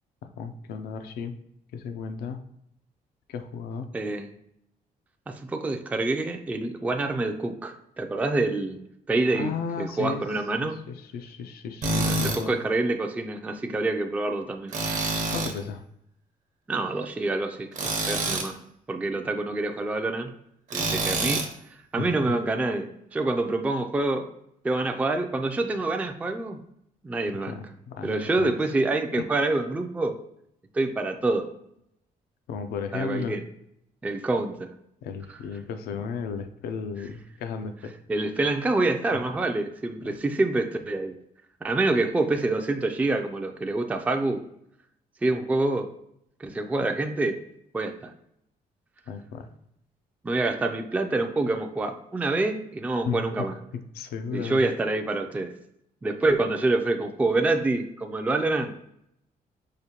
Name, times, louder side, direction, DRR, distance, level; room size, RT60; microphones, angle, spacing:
voice 1, 0.2-1.3 1.7-2.4 3.3-3.9 9.3-10.2 10.6-12.6 15.3-15.8 22.0-22.4 27.5-28.5 29.2-29.3 32.5-33.4 35.0-38.0 39.1-39.2 49.1-49.5 53.1-53.2 53.9-54.6, left 6 dB, 85° left, 8 dB, 0.4 m, -34 dB
voice 2, 3.9-4.3 5.3-10.8 12.1-14.7 16.7-18.6 18.9-20.3 20.7-21.4 21.7-24.3 24.6-26.6 27.0-27.6 28.0-30.2 30.7-31.5 32.9-33.4 34.0-34.7 38.1-41.2 41.6-44.4 45.2-45.9 46.4-47.4 47.7-48.1 50.2-53.5 54.3-55.5 56.0-58.7, right 2 dB, 10° right, 5 dB, 0.3 m, -27 dB
Tools, 11.8-12.4 14.7-15.6 17.7-18.5 20.7-21.5, right 2 dB, 55° right, 0.8 m, -26 dB
4.9 x 2.2 x 2.9 m, 0.76 s
cardioid pair, 95°, 16 cm